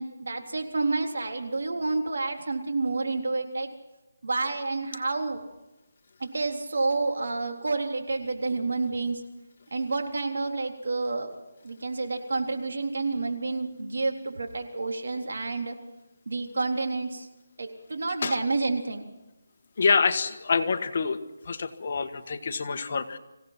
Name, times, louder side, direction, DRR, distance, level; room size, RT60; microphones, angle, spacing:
voice 1, 0.0-3.7 4.2-5.4 6.2-9.2 9.7-11.3 11.6-15.8 16.3-17.3 17.6-19.1, right 3 dB, 70° right, 3 dB, 3.6 m, -29 dB
voice 2, 19.8-21.2 21.4-23.2, left 5 dB, 45° left, 8 dB, 1.5 m, -26 dB
26.0 x 16.5 x 6.0 m, 1.0 s
figure-of-eight pair, 170°, 0 cm